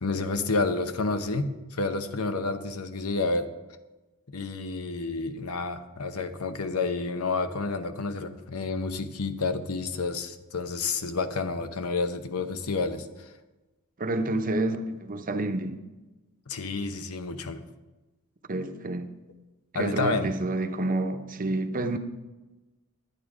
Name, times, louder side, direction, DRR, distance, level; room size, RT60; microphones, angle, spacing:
voice 1, 0.0-3.5 4.3-13.3 16.5-17.6 19.7-20.3, left 3 dB, 80° left, 0.9 m, -30 dB
voice 2, 14.0-15.8 18.5-19.1 19.7-22.0, right 2 dB, 40° right, 0.8 m, -29 dB
10.5 x 9.3 x 4.9 m
head